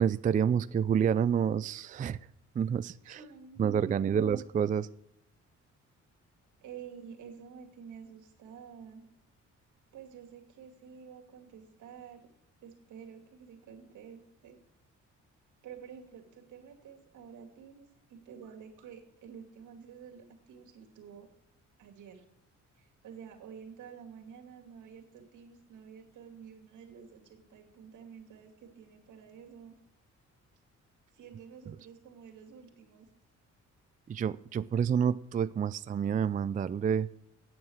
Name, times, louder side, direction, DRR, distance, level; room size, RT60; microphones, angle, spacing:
voice 1, 0.0-2.2 2.6-3.2 3.6-4.9 34.1-37.1, right 8 dB, 25° right, 15 dB, 0.4 m, -28 dB
voice 2, 3.0-4.4 6.6-9.1 9.9-12.3 12.6-14.6 15.6-21.3 21.8-22.2 22.7-29.8 31.1-33.1, right 7 dB, 75° right, 3 dB, 2.5 m, -50 dB
9.0 x 8.6 x 6.3 m, 0.74 s
cardioid pair, 90°, 30 cm